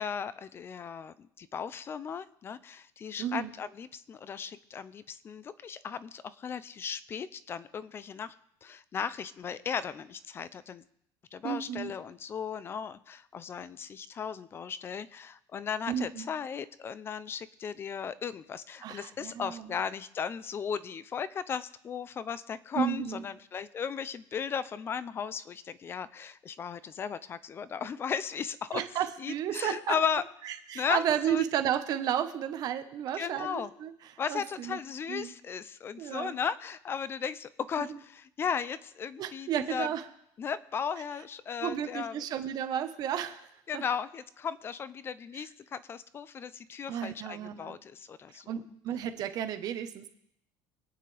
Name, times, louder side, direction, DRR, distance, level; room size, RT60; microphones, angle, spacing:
voice 1, 0.0-8.3 8.6-10.8 11.3-28.8 29.2-30.2 30.7-31.4 33.1-33.7 34.2-39.9 40.4-42.1 43.7-48.5, left 7 dB, 25° left, 16 dB, 0.5 m, -36 dB
voice 2, 3.2-3.5 11.4-11.9 15.9-16.3 18.8-19.7 22.7-23.2 28.7-30.0 30.4-33.9 34.3-34.8 35.1-35.3 36.0-36.4 37.8-38.0 39.2-40.1 41.6-43.5 43.7-43.8 45.3-45.4 46.9-47.8 48.3-50.1, right 10 dB, 45° right, 9 dB, 1.1 m, -33 dB
25.5 x 9.3 x 3.4 m, 0.74 s
cardioid pair, 165°, 9 cm